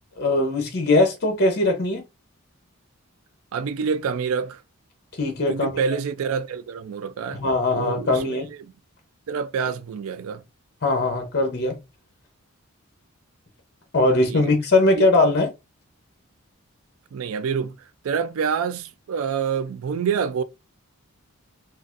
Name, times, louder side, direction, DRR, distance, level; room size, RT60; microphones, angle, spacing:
voice 1, 0.2-2.0 5.1-5.8 7.3-8.5 10.8-11.8 13.9-15.5, left 2 dB, 45° left, 0.7 m, -20 dB
voice 2, 3.5-4.6 5.5-7.4 7.7-8.7 9.3-10.4 14.3-14.5 15.0-15.1 17.1-17.7 18.0-20.4, right 6 dB, 70° right, 0.3 m, -27 dB
3.9 x 2.4 x 2.5 m
head